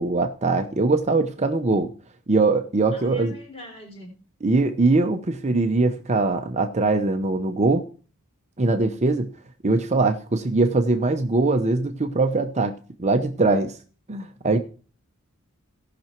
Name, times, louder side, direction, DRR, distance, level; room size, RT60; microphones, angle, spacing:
voice 1, 0.0-1.9 2.3-3.4 4.4-7.9 8.6-9.3 9.6-13.8 14.1-14.6, right 3 dB, 30° right, 0.7 m, -22 dB
voice 2, 2.9-4.1, left 1 dB, 25° left, 3.8 m, -42 dB
17.0 x 5.9 x 4.4 m
head